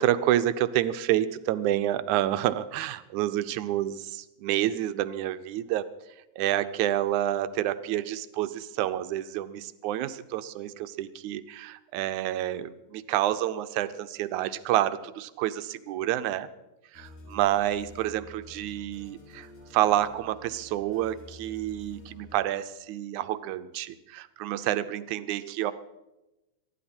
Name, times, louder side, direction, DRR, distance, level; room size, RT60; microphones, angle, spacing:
voice 1, 0.0-5.9 6.4-16.5 16.9-19.5 19.7-25.7, right 13 dB, 85° right, 13 dB, 2.1 m, -28 dB
sound 1, 16.9-22.4, left 2 dB, 80° left, 6.6 m, -49 dB
26.5 x 11.0 x 4.4 m, 1.0 s
omnidirectional pair, 3.3 m